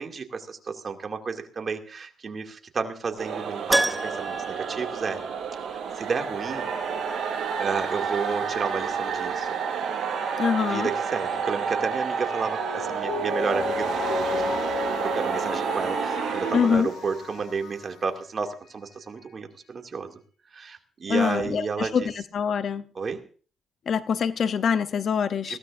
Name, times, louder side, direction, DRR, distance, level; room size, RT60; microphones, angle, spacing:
voice 1, 0.0-5.2 5.7-6.7 7.6-9.5 10.6-14.4 15.0-20.2 20.5-22.1 23.0-23.2 25.4-25.6, right 5 dB, 40° right, 2.4 m, -31 dB
sound 1, 3.2-17.3, right 6 dB, 65° right, 6.0 m, -30 dB
Keyboard (musical), 3.7-5.8 6.0-6.1 8.8-8.9 9.1-9.2, right 1 dB, 10° right, 0.9 m, -28 dB
voice 2, 10.4-10.9 16.5-16.9 21.1-22.8 23.9-25.6, left 7 dB, 55° left, 0.8 m, -24 dB
Mallet percussion, 12.6-18.1 18.4-18.5, left 4 dB, 90° left, 6.5 m, -33 dB
21.0 x 16.5 x 2.6 m
cardioid pair, 90°, 0 cm